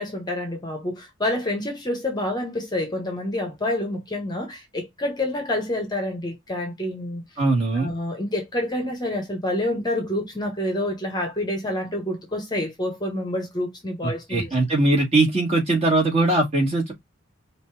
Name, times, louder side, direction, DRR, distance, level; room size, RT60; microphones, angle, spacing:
voice 1, 0.0-7.2 7.7-14.5, left 1 dB, 20° left, 1.0 m, -28 dB
voice 2, 7.4-7.9 14.0-16.9, right 2 dB, 30° right, 2.1 m, -21 dB
5.2 x 2.7 x 3.2 m
head